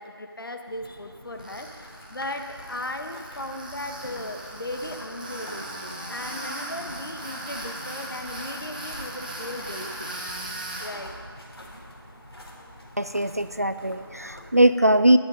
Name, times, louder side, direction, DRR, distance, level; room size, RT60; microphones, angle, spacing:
voice 1, 0.0-10.1 10.8-11.1, left 1 dB, 60° left, 5 dB, 1.3 m, -37 dB
sound 1, 0.7-14.5, equal, 80° left, 3.5 m, -46 dB
Tools, 1.4-10.9, right 1 dB, 20° right, 1.3 m, -38 dB
voice 2, 13.0-15.2, right 1 dB, 40° right, 11 dB, 0.3 m, -20 dB
12.5 x 11.5 x 5.1 m, 2.2 s
figure-of-eight pair, 175°, 13 cm